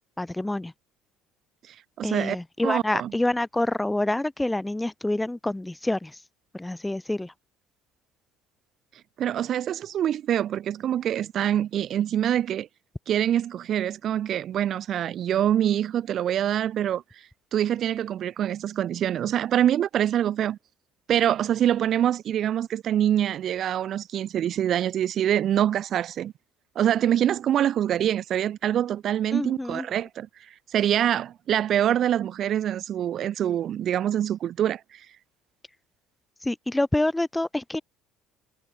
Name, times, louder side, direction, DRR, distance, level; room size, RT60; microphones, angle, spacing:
voice 1, 0.2-0.7 2.0-6.2 6.5-7.3 29.3-29.9 36.4-37.8, left 1 dB, 5° left, 0.8 m, -27 dB
voice 2, 2.0-2.4 2.6-3.1 9.2-12.7 13.1-17.0 17.5-20.6 21.1-26.3 26.8-35.1, right 10 dB, 40° right, 0.8 m, -25 dB
cardioid pair, 170°, 0 cm